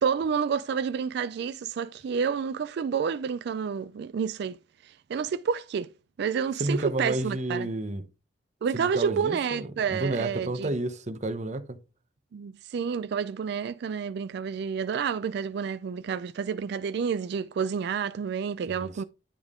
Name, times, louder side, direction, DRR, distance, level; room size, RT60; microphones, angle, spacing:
voice 1, 0.0-5.9 6.2-7.7 8.6-10.7 12.3-19.0, right 6 dB, 60° right, 0.3 m, -29 dB
voice 2, 6.6-8.0 8.7-11.8 18.7-19.0, right 2 dB, 40° right, 0.8 m, -31 dB
10.0 x 3.5 x 3.6 m
head